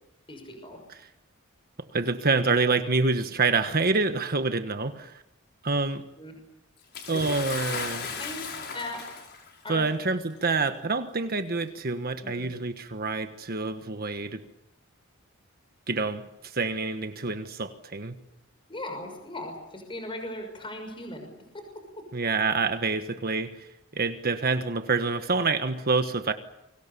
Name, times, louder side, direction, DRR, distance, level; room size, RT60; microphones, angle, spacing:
voice 1, 0.3-0.8 6.2-6.4 7.1-7.2 8.2-9.0 9.6-9.8 12.2-12.5 18.7-21.3, left 1 dB, 25° left, 5 dB, 6.0 m, -38 dB
voice 2, 1.9-5.2 5.6-6.0 7.1-8.1 9.7-14.4 15.9-18.1 22.1-23.7 23.9-26.3, right 4 dB, 45° right, 8 dB, 1.4 m, -27 dB
Bathtub (filling or washing) / Splash splatter, 6.9-9.5 10.5-10.6 11.6-11.7, left 5 dB, 50° left, 5.7 m, -36 dB
29.5 x 24.0 x 7.0 m, 0.83 s
head